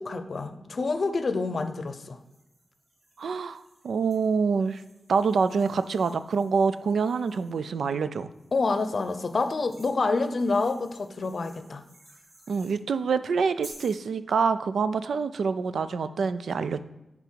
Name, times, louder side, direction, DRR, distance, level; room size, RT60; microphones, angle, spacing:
voice 1, 0.0-2.2 8.5-11.8, left 3 dB, 50° left, 9 dB, 0.6 m, -27 dB
sound 1, 2.1-7.7 8.3-12.8 13.6-14.1, right 1 dB, 50° right, 2.2 m, -54 dB
voice 2, 3.2-4.8 5.1-8.3 12.5-16.8, right 5 dB, 85° right, 12 dB, 0.4 m, -26 dB
10.5 x 4.0 x 4.5 m, 0.95 s
wide cardioid pair, 105°, 0 cm